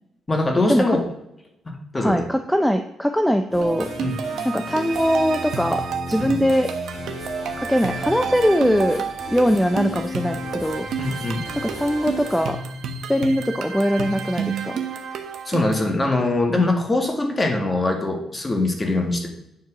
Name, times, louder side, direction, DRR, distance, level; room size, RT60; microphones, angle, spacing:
voice 1, 0.3-1.0 1.7-2.2 4.0-4.2 6.2-6.3 11.0-11.5 15.5-19.3, left 2 dB, 20° left, 3 dB, 2.0 m, -22 dB
voice 2, 2.0-3.9 4.4-5.8 6.1-6.7 7.6-10.9 11.6-12.6 13.1-14.8, equal, 5° left, 6 dB, 0.6 m, -21 dB
sound 1, 3.5-12.5, left 3 dB, 45° left, 2.4 m, -36 dB
sound 2, 3.6-15.9, right 6 dB, 70° right, 1.2 m, -30 dB
9.5 x 4.5 x 6.3 m, 0.85 s
cardioid pair, 90°, 0 cm